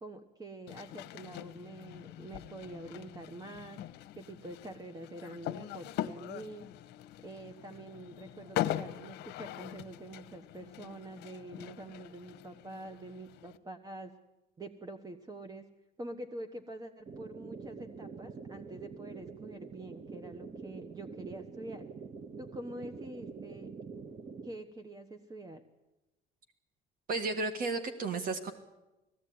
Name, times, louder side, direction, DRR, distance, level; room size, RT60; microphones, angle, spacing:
voice 1, 0.0-3.8 4.2-6.7 7.2-14.1 14.6-15.7 16.0-21.9 22.4-23.7 24.4-25.6, right 1 dB, 20° right, 8 dB, 1.1 m, -46 dB
sound 1, 0.7-13.6, left 13 dB, 80° left, 0.8 m, -42 dB
sound 2, 17.1-24.5, right 5 dB, 40° right, 1.4 m, -46 dB
voice 2, 27.1-28.5, right 3 dB, 55° right, 8 dB, 1.7 m, -33 dB
19.0 x 15.5 x 9.4 m, 1.0 s
cardioid pair, 110°, 17 cm